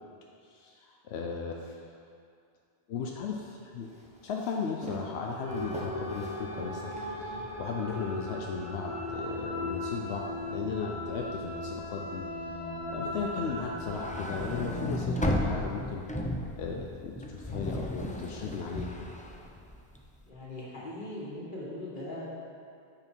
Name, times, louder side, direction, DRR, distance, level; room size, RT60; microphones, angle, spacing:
voice 1, 0.5-1.8 2.9-3.9 4.2-12.2 12.9-16.0 16.6-19.0, left 5 dB, 90° left, 1 dB, 0.9 m, -36 dB
Walk footsteps, 3.2-7.6, right 1 dB, 5° right, 1.0 m, -45 dB
sound 1, 5.4-14.6, left 1 dB, 75° right, 1.9 m, -37 dB
sound 2, 13.8-20.1, left 1 dB, 15° left, 0.3 m, -34 dB
voice 2, 20.3-22.3, left 1 dB, 50° left, -6 dB, 2.0 m, -40 dB
8.7 x 5.7 x 4.6 m, 2.4 s
omnidirectional pair, 1.1 m